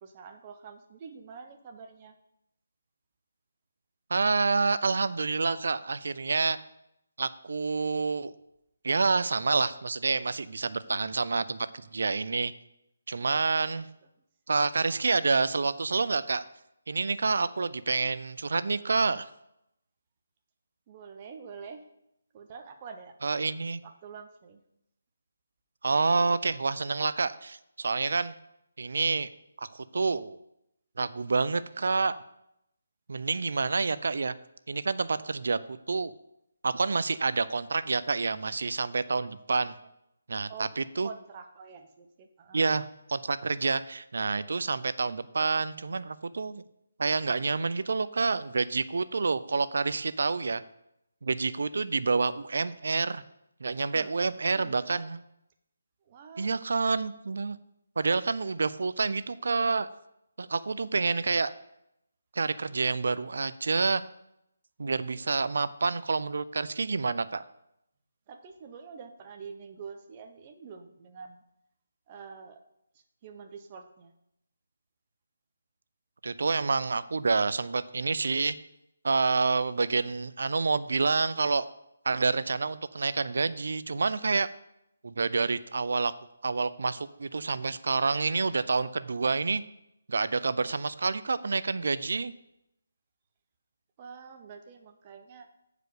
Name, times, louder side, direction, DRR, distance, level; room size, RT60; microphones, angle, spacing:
voice 1, 0.0-2.1 20.9-21.8 22.3-23.1 23.8-24.6 35.1-35.2 40.5-40.7 41.0-42.7 53.9-54.1 54.4-55.0 56.0-56.5 68.3-71.4 72.1-72.6 72.9-74.1 94.0-95.5, right 5 dB, 25° right, 5 dB, 0.9 m, -46 dB
voice 2, 4.1-6.6 7.2-8.3 8.8-12.5 13.1-13.9 14.5-16.4 16.9-19.3 23.2-23.8 25.8-28.3 28.8-29.3 29.6-30.4 31.0-32.2 33.1-34.3 34.7-36.1 36.6-39.7 40.3-41.1 42.5-42.8 43.1-46.6 47.0-50.6 51.2-53.2 53.6-55.2 56.4-57.6 58.0-59.9 60.4-61.5 62.3-64.0 64.8-67.4 76.2-78.6 79.0-81.7 82.0-84.5 85.0-86.1 86.4-89.6 90.1-92.3, right 4 dB, 70° right, 15 dB, 0.5 m, -28 dB
7.7 x 4.9 x 6.8 m, 0.81 s
figure-of-eight pair, 160°, 0 cm